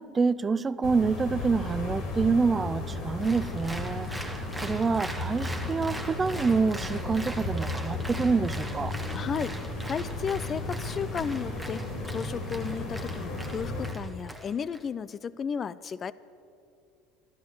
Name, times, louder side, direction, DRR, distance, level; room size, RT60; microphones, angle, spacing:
voice 1, 0.0-8.9, right 4 dB, 25° right, 17 dB, 0.4 m, -27 dB
sound 1, 0.8-13.9, left 2 dB, 55° left, 2.8 m, -34 dB
sound 2, 3.1-3.7 5.9-8.2 8.7-8.9, right 5 dB, 65° right, 1.3 m, -49 dB
Applause, 3.2-14.8, right 1 dB, 5° right, 1.4 m, -42 dB
voice 2, 9.1-16.1, left 6 dB, 35° left, 18 dB, 0.5 m, -34 dB
13.0 x 12.5 x 6.7 m, 2.5 s
hypercardioid pair, 75°, 0 cm